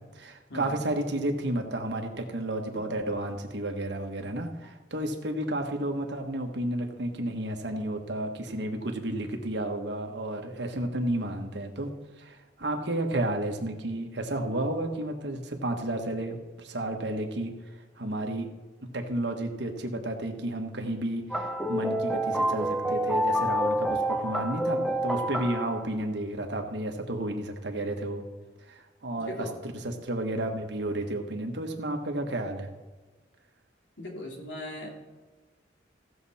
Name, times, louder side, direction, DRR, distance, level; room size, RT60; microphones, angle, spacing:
voice 1, 0.1-11.9 12.2-17.5 18.0-18.5 18.8-28.2 28.7-32.7, right 1 dB, 70° right, 4 dB, 1.4 m, -32 dB
sound 1, 21.3-25.9, equal, ahead, 0.6 m, -28 dB
voice 2, 29.2-29.5 34.0-34.9, left 1 dB, 70° left, -1 dB, 2.9 m, -39 dB
16.0 x 6.9 x 4.3 m, 1.3 s
head